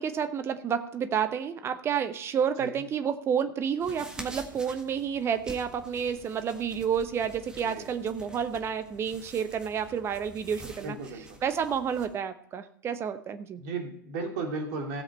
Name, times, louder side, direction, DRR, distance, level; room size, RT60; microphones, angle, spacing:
voice 1, 0.0-11.0 11.4-13.6, right 7 dB, 25° right, 10 dB, 0.8 m, -30 dB
sound 1, 3.8-12.1, right 1 dB, 5° right, 1.7 m, -47 dB
voice 2, 10.8-11.4 13.6-15.0, right 3 dB, 45° right, 2 dB, 2.6 m, -35 dB
16.0 x 7.6 x 4.3 m, 0.65 s
figure-of-eight pair, 100°, 11 cm